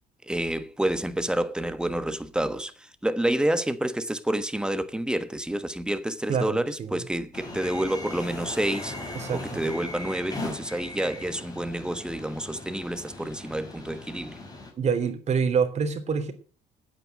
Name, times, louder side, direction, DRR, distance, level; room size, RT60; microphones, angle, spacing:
voice 1, 0.3-14.4, right 1 dB, 5° right, 1.3 m, -29 dB
voice 2, 6.3-7.0 9.1-9.6 14.8-16.3, right 6 dB, 40° right, 3.1 m, -26 dB
sound 1, 7.3-14.7, left 2 dB, 20° left, 4.5 m, -39 dB
9.4 x 8.8 x 9.1 m
cardioid pair, 110°, 17 cm